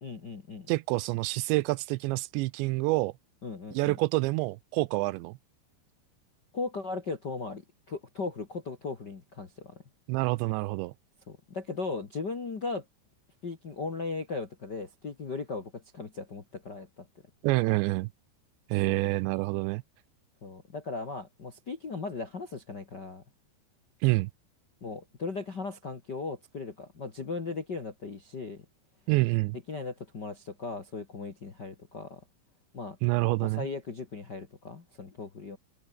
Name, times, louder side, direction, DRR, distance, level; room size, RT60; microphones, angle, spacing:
voice 1, 0.0-0.7 3.4-4.0 6.5-9.8 11.3-12.8 13.4-17.1 18.9-19.0 20.4-23.2 24.8-28.6 29.7-32.2 32.7-33.0 33.4-35.6, left 4 dB, 45° left, 1.3 m, -37 dB
voice 2, 0.7-3.1 3.7-5.4 10.1-10.9 17.4-18.1 18.7-19.8 24.0-24.3 29.1-29.6 33.0-33.7, right 21 dB, 80° right, 2.8 m, -27 dB
omnidirectional pair, 5.3 m